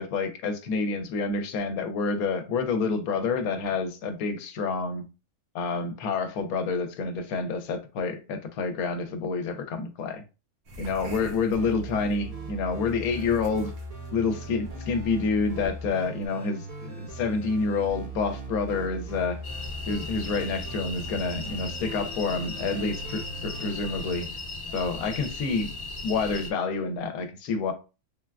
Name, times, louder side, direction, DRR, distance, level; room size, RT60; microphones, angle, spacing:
voice 1, 0.0-5.0 5.5-10.2 10.8-13.7 14.1-19.4 19.9-24.3 24.7-25.7 26.0-27.7, left 4 dB, 80° left, 1.0 m, -28 dB
sound 1, 10.7-12.2 12.8-16.3, equal, 75° right, 1.3 m, -45 dB
sound 2, 11.5-24.2, right 2 dB, 35° right, 0.6 m, -39 dB
Woy Woy Nightlife, 19.4-26.5, left 3 dB, 50° left, 0.6 m, -37 dB
3.5 x 2.3 x 2.2 m
omnidirectional pair, 1.5 m